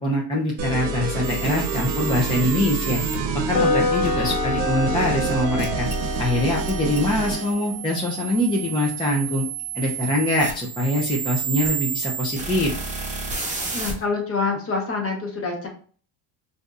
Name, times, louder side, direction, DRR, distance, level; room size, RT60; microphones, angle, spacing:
voice 1, 0.0-3.0 3.5-5.9 6.2-9.4 9.7-12.7, left 1 dB, 10° left, -4 dB, 0.5 m, -23 dB
sound 1, 0.6-7.5, right 4 dB, 85° right, 0.8 m, -27 dB
sound 2, 1.2-3.1 5.6-13.9, right 6 dB, 15° right, 1.1 m, -31 dB
sound 3, 3.5-11.5, left 5 dB, 70° left, 1.2 m, -30 dB
voice 2, 13.7-15.7, left 4 dB, 30° left, 1 dB, 1.0 m, -26 dB
3.3 x 2.7 x 2.4 m, 0.43 s
cardioid pair, 120°, 47 cm